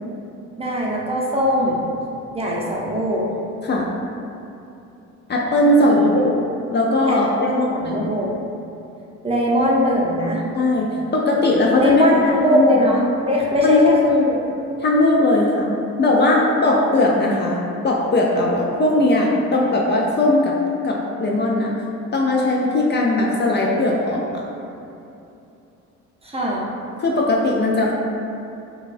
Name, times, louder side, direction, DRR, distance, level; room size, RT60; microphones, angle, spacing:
voice 1, 0.6-1.8 2.3-3.2 5.6-6.1 7.1-8.3 9.2-10.4 11.8-14.4 26.2-26.6, equal, 20° right, -4 dB, 0.6 m, -20 dB
voice 2, 5.3-6.4 6.7-8.1 10.5-12.2 12.5-12.7 13.6-13.9 14.8-15.7 16.0-20.6 20.8-21.7 22.1-24.4 27.0-27.9, left 2 dB, 35° left, -2 dB, 0.4 m, -18 dB
5.1 x 2.3 x 2.5 m, 2.8 s
cardioid pair, 90°, 30 cm